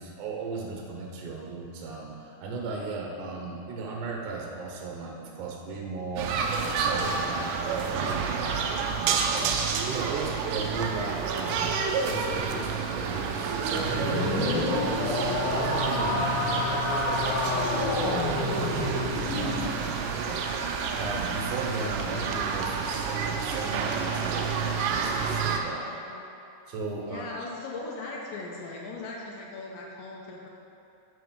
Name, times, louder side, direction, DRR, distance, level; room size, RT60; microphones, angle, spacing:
voice 1, 0.0-11.7 12.0-25.8 26.7-27.3, right 3 dB, 70° right, -1 dB, 2.1 m, -36 dB
sound 1, 6.2-25.6, right 5 dB, 85° right, 2.0 m, -29 dB
sound 2, 13.8-19.7, left 2 dB, 55° left, 2.4 m, -28 dB
voice 2, 25.6-26.3 27.0-30.5, left 3 dB, 75° left, -2 dB, 2.4 m, -39 dB
7.9 x 6.8 x 5.2 m, 2.7 s
omnidirectional pair, 4.4 m